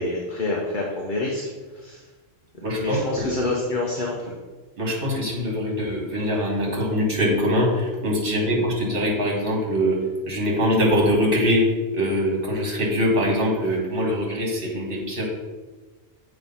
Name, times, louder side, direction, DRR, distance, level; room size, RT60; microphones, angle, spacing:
voice 1, 0.0-1.5 1.8-2.0 2.6-4.3 8.4-8.5, left 2 dB, 45° left, -2 dB, 1.0 m, -27 dB
voice 2, 2.6-3.3 4.8-10.0 10.3-15.2, equal, 45° right, -1 dB, 1.8 m, -23 dB
7.6 x 3.2 x 5.5 m, 1.3 s
omnidirectional pair, 1.3 m